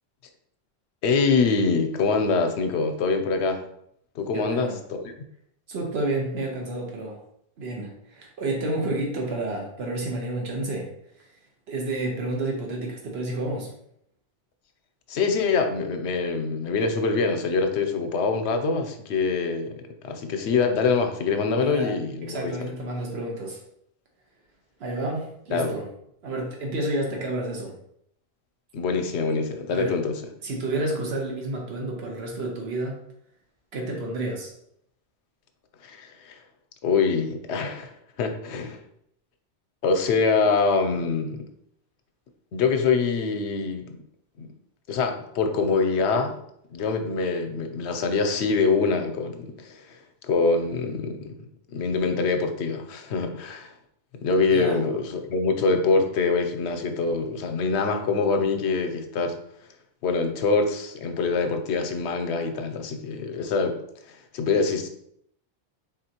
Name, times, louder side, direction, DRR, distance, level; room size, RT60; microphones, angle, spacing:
voice 1, 1.0-3.6 4.2-5.0 15.1-22.6 25.5-25.8 28.7-30.2 35.8-36.3 36.8-37.9 38.2-38.8 39.8-41.5 42.5-44.0 44.4-44.5 44.9-46.4 46.7-50.0 50.2-51.4 51.7-53.7 54.1-59.4 60.0-63.8 64.3-64.9, left 4 dB, 85° left, 6 dB, 0.9 m, -24 dB
voice 2, 4.3-4.8 5.7-7.2 7.6-10.9 11.2-11.3 11.7-13.7 21.6-21.9 22.2-23.6 24.8-25.9 26.2-27.8 29.7-30.0 30.4-33.0 33.7-34.5 54.5-54.8, right 2 dB, 70° right, 0 dB, 1.2 m, -30 dB
4.2 x 3.6 x 2.8 m, 0.72 s
omnidirectional pair, 1.1 m